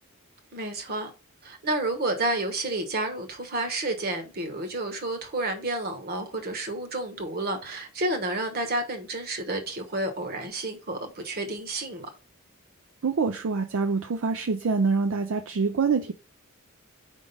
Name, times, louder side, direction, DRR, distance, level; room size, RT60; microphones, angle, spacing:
voice 1, 0.5-1.1 1.4-12.1, right 2 dB, 50° right, 1.2 m, -30 dB
voice 2, 13.0-16.1, right 4 dB, 65° right, 0.5 m, -25 dB
5.1 x 3.6 x 5.4 m
head